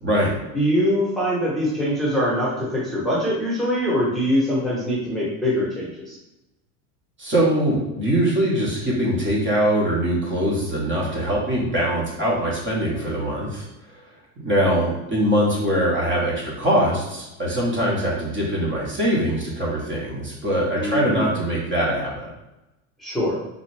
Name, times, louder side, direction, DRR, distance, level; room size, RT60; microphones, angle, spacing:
voice 1, 0.0-0.4 7.2-13.6 14.4-22.3, equal, 30° right, -4 dB, 1.2 m, -22 dB
voice 2, 0.5-6.2 20.7-21.4 23.0-23.4, equal, ahead, -7 dB, 1.1 m, -23 dB
3.8 x 2.5 x 3.3 m, 0.97 s
supercardioid pair, 115°, 42 cm